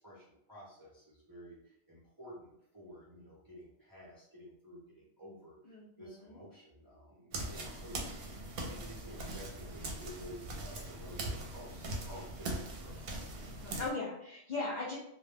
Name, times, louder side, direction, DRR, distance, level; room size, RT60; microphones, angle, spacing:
voice 1, 0.0-13.0, equal, 25° right, -8 dB, 0.5 m, -52 dB
voice 2, 5.7-6.4 13.3-15.0, left 3 dB, 55° left, -4 dB, 0.5 m, -39 dB
sound 1, 7.3-13.9, right 1 dB, 70° right, 0.8 m, -41 dB
2.1 x 2.1 x 3.1 m, 0.78 s
omnidirectional pair, 1.1 m